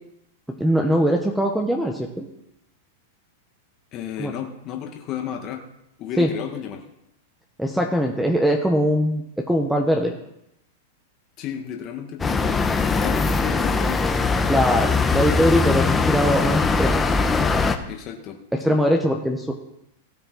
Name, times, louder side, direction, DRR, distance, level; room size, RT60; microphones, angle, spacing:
voice 1, 0.6-2.3 4.2-4.3 6.2-6.3 7.6-10.1 14.5-17.0 17.3-17.8 18.5-19.5, equal, 5° right, 3 dB, 1.2 m, -22 dB
voice 2, 3.9-5.6 6.0-6.8 11.4-14.0 17.9-18.4 18.7-18.8, left 9 dB, 40° left, 2 dB, 1.7 m, -33 dB
sound 1, 12.2-17.8, left 4 dB, 15° left, 1.0 m, -21 dB
17.0 x 6.8 x 4.0 m, 0.81 s
hypercardioid pair, 115°, 0 cm